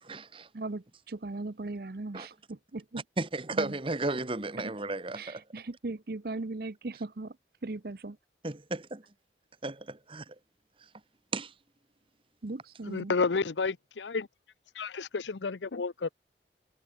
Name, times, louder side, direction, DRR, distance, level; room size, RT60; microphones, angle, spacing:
voice 1, 0.0-0.5 2.1-2.3 3.2-5.4 8.4-9.0 9.6-10.3 11.3-11.5, right 2 dB, 30° right, 1.2 m, -34 dB
voice 2, 0.5-3.0 3.5-3.7 4.6-4.7 5.1-7.3 7.6-8.2 12.4-13.1, right 2 dB, 55° right, 0.8 m, -38 dB
voice 3, 12.9-14.3 14.7-16.1, left 4 dB, 85° left, 0.7 m, -31 dB
head